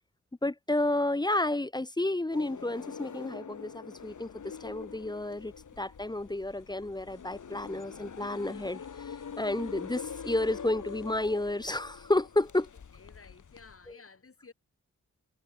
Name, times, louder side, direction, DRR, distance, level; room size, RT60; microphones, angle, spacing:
voice 1, 0.4-12.7 13.9-14.0, left 2 dB, 15° left, 0.7 m, -31 dB
sound 1, 2.3-13.9, left 6 dB, 70° left, 3.4 m, -44 dB
sound 2, 4.0-13.8, left 7 dB, 85° left, 5.3 m, -56 dB
voice 2, 12.9-14.5, left 4 dB, 45° left, 6.5 m, -54 dB
wide cardioid pair, 85°, 30 cm